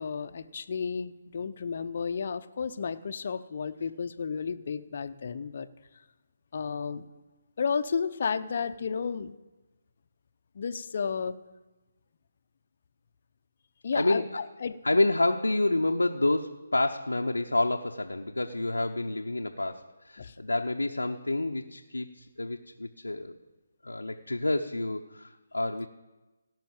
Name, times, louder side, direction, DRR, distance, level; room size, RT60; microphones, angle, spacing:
voice 1, 0.0-5.7 6.5-7.1 7.6-9.4 10.5-11.3 13.8-14.8 20.2-20.3, left 6 dB, 50° left, 10 dB, 0.6 m, -32 dB
voice 2, 13.9-14.3 14.8-23.4 23.8-25.9, left 2 dB, 85° left, 2 dB, 0.7 m, -28 dB
17.0 x 5.8 x 7.2 m, 1.1 s
figure-of-eight pair, 145°, 0 cm